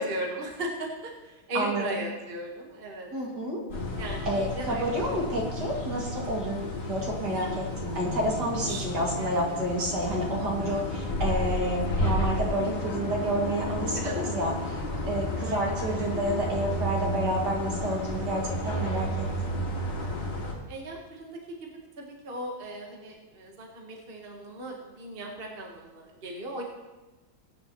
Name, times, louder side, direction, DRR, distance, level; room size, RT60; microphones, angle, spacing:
voice 1, 0.0-3.1 4.0-5.2 7.3-7.5 8.7-9.4 11.5-11.6 13.9-14.2 15.4-16.1 20.7-21.7 22.0-26.6, right 1 dB, 30° right, 0 dB, 1.4 m, -38 dB
voice 2, 3.1-3.6 4.3-19.6, right 1 dB, 55° right, -2 dB, 2.7 m, -30 dB
sound 1, 3.7-20.5, left 1 dB, 90° left, 5.1 m, -32 dB
21.0 x 9.3 x 3.0 m, 1.1 s
omnidirectional pair, 2.2 m